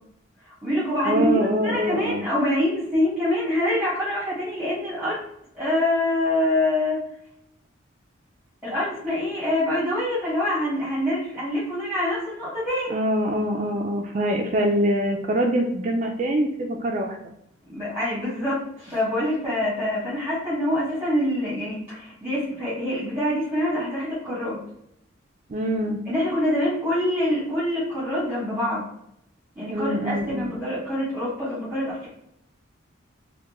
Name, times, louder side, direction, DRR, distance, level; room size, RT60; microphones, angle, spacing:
voice 1, 0.4-5.2 5.5-7.0 8.6-13.0 17.7-24.6 26.0-28.8 29.6-32.1, left 1 dB, 10° right, -10 dB, 1.1 m, -25 dB
voice 2, 1.0-2.3 12.9-17.2 25.5-26.0 29.7-30.5, equal, 40° right, 1 dB, 0.3 m, -24 dB
3.4 x 2.1 x 2.9 m, 0.77 s
head